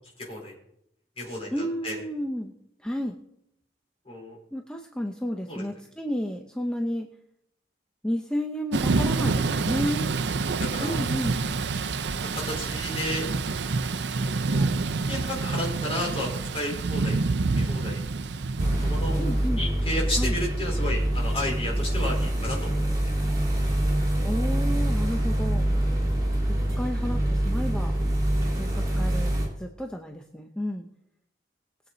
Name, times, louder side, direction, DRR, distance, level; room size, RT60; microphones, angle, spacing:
voice 1, 0.2-0.5 1.2-2.0 4.1-4.4 5.5-5.6 10.5-11.1 12.3-13.3 14.5-14.7 15.1-17.2 17.5-18.0 18.8-19.1 19.6-22.8 25.7-25.9, left 1 dB, 35° left, -1 dB, 4.1 m, -32 dB
voice 2, 1.5-2.5 2.8-3.2 4.5-7.1 8.0-10.1 10.8-11.4 19.2-19.6 20.2-20.3 24.2-25.7 26.5-27.9 28.6-30.9, equal, 5° left, 2 dB, 0.7 m, -31 dB
Thunder / Rain, 8.7-19.5, right 3 dB, 75° right, 0.6 m, -27 dB
sound 1, 18.6-29.5, right 1 dB, 20° right, 3.7 m, -25 dB
20.5 x 7.9 x 4.0 m, 0.78 s
head